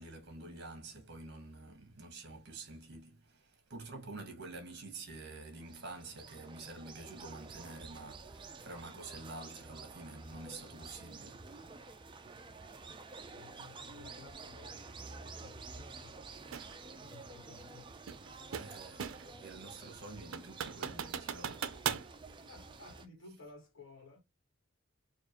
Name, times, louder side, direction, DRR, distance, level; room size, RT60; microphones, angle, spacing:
voice 1, 0.0-11.4 12.2-12.3 18.5-21.7 22.3-22.5, right 2 dB, 55° right, 1.4 m, -48 dB
sound 1, 5.4-23.1, right 4 dB, 25° right, 0.5 m, -50 dB
voice 2, 13.3-16.2 16.9-17.9 22.5-24.2, left 3 dB, 70° left, 1.5 m, -56 dB
sound 2, 16.5-16.7 18.1-19.4 19.8-19.9 20.3-22.1, right 7 dB, 80° right, 0.5 m, -38 dB
4.4 x 2.5 x 2.9 m
head